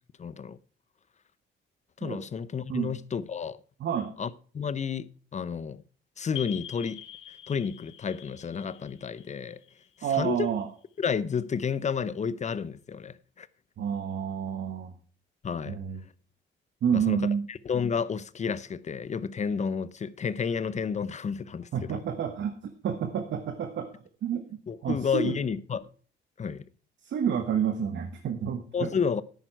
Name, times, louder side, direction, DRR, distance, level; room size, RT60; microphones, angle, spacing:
voice 1, 0.2-0.6 2.0-3.6 4.2-5.8 6.2-9.6 10.0-10.5 11.0-13.5 15.4-15.8 16.9-22.0 24.7-25.9 26.4-26.7 28.7-29.2, left 6 dB, 35° left, 0.7 m, -31 dB
voice 2, 3.8-4.1 10.0-10.7 13.8-14.9 15.7-16.0 16.8-17.5 21.7-22.5 22.8-23.9 24.2-24.5 24.8-25.3 27.0-28.6, right 8 dB, 65° right, 1.3 m, -29 dB
sound 1, 6.3-10.8, left 10 dB, 80° left, 1.2 m, -45 dB
10.5 x 9.0 x 4.6 m
cardioid pair, 90°, 20 cm